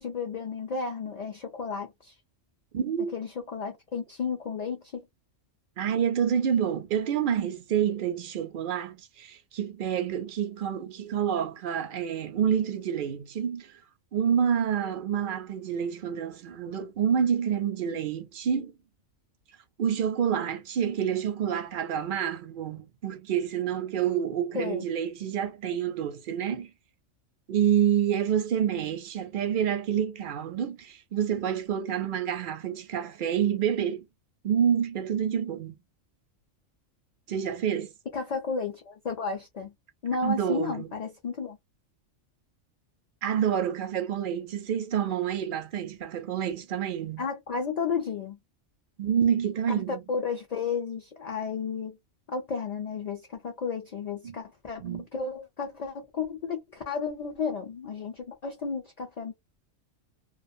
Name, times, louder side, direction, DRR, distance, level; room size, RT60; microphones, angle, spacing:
voice 1, 0.0-2.1 3.1-5.0 24.5-24.8 38.1-39.7 40.0-41.6 47.2-48.4 49.9-52.0 52.3-54.8 55.1-59.3, left 5 dB, 55° left, 0.4 m, -33 dB
voice 2, 2.7-3.1 5.8-13.8 14.1-18.7 19.8-26.7 27.5-34.0 34.4-35.8 37.3-37.9 40.2-40.9 43.2-47.3 49.0-50.0 54.2-54.4 54.8-55.1, right 8 dB, 60° right, 0.5 m, -28 dB
2.4 x 2.3 x 2.5 m
omnidirectional pair, 1.3 m